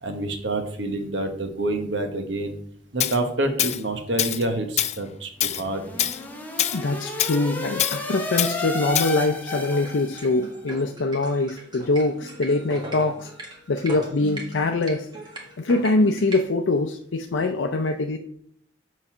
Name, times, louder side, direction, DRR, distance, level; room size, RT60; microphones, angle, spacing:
voice 1, 0.0-2.6 2.9-6.1, right 2 dB, 75° right, 6 dB, 1.2 m, -27 dB
Tools, 3.0-3.2 3.6-3.8 4.2-4.4 4.8-5.0 5.4-5.6 6.0-6.2 6.6-6.8 7.2-7.4 7.8-8.0 8.4-8.5 8.9-9.1, left 11 dB, 35° left, 0.4 m, -24 dB
sound 1, 5.5-10.5, left 2 dB, 10° left, 0.9 m, -32 dB
voice 2, 6.7-13.3 13.7-15.1 15.6-18.2, left 2 dB, 85° left, 4 dB, 0.5 m, -23 dB
sound 2, 9.4-16.4, right 2 dB, 25° right, 1.6 m, -38 dB
7.4 x 4.0 x 5.5 m, 0.65 s
head